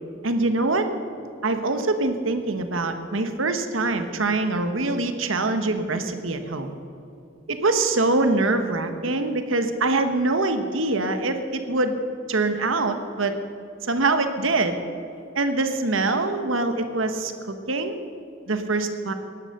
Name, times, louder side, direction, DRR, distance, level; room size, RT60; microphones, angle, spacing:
voice 1, 0.2-0.9 1.4-6.7 7.5-11.9 12.3-13.3 13.8-14.8 15.3-18.0 18.5-19.1, right 2 dB, 90° right, 8 dB, 1.2 m, -24 dB
17.0 x 11.5 x 6.6 m, 2.6 s
head